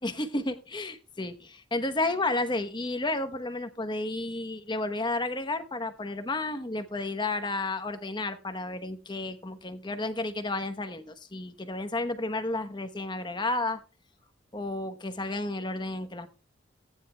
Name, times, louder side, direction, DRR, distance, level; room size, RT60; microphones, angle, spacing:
voice 1, 0.0-13.8 14.5-16.3, left 2 dB, 25° left, 9 dB, 1.0 m, -32 dB
18.0 x 10.0 x 2.3 m, 0.34 s
head